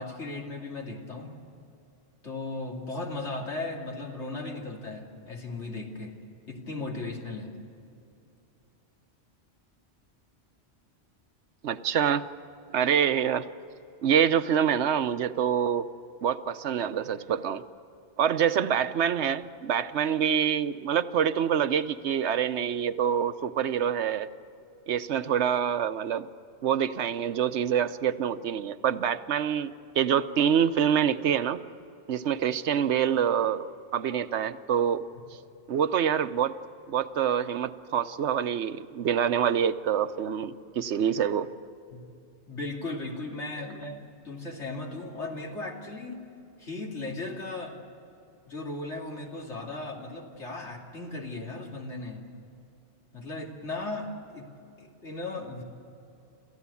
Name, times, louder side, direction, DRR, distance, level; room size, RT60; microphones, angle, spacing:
voice 1, 0.0-1.3 2.2-6.1 6.5-7.5 41.9-42.0 42.5-46.2 46.6-47.8 48.5-52.2 53.1-54.5 54.8-55.6, left 2 dB, 85° left, 0 dB, 3.0 m, -36 dB
voice 2, 11.6-12.2 12.7-13.5 14.0-15.9 16.2-17.6 18.2-24.3 24.9-26.3 26.6-31.6 32.1-33.7 33.9-35.0 35.7-36.5 36.9-41.5 43.8-44.0, right 8 dB, 85° right, 12 dB, 1.1 m, -26 dB
28.0 x 14.5 x 8.4 m, 2.7 s
omnidirectional pair, 1.2 m